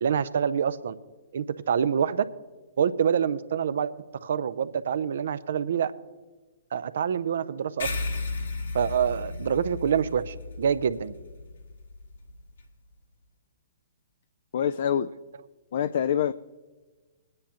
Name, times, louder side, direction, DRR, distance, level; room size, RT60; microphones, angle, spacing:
voice 1, 0.0-0.9 1.3-2.2 2.8-3.9 4.2-5.9 6.7-7.9 8.7-11.1, right 7 dB, 65° right, 14 dB, 0.5 m, -26 dB
sound 1, 7.8-12.6, left 3 dB, 75° left, 1.5 m, -35 dB
voice 2, 14.5-15.1 15.7-16.3, left 9 dB, 60° left, 13 dB, 0.3 m, -25 dB
21.5 x 9.6 x 2.9 m, 1.3 s
hypercardioid pair, 125°, 0 cm